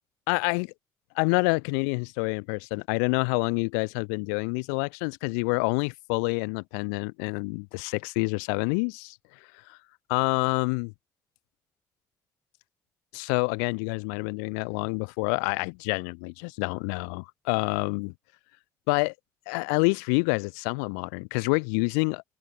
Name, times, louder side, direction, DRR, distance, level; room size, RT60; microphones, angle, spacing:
voice 1, 0.3-0.7 1.2-9.2 9.7-9.8 10.1-10.9 13.1-18.1 18.9-19.1 19.5-22.2, left 38 dB, 80° left, 0.5 m, -27 dB
open air
hypercardioid pair, 45°, 9 cm